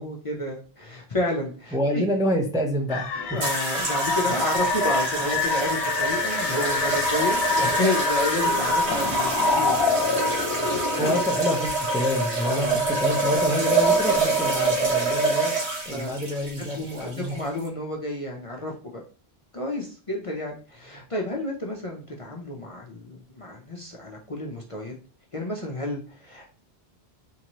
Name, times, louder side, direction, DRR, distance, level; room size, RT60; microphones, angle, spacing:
voice 1, 0.0-2.1 3.2-11.2 12.4-12.8 15.9-16.2 16.7-19.0 19.5-24.9 25.3-26.5, left 1 dB, 40° left, -1 dB, 0.6 m, -31 dB
voice 2, 1.7-3.4 11.0-12.7 13.0-15.6 15.9-17.3, equal, 5° right, 0 dB, 0.5 m, -27 dB
sound 1, 2.9-11.2, left 5 dB, 65° left, 1.0 m, -29 dB
sound 2, 3.4-17.7, right 2 dB, 90° right, 1.4 m, -25 dB
3.7 x 2.8 x 2.9 m, 0.38 s
omnidirectional pair, 1.1 m